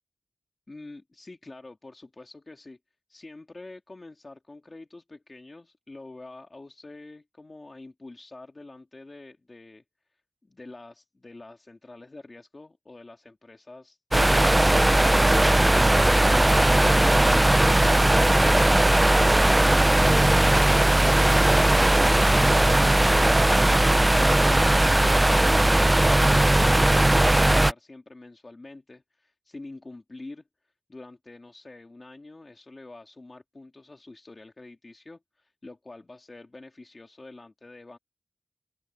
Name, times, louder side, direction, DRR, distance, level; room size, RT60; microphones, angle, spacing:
voice 1, 0.7-2.8 3.1-9.8 10.4-14.0 21.0-30.5 30.9-38.0, left 2 dB, 45° left, 1.9 m, -47 dB
sound 1, 14.1-27.7, right 1 dB, 20° right, 0.3 m, -19 dB
open air
wide cardioid pair, 90°, 0 cm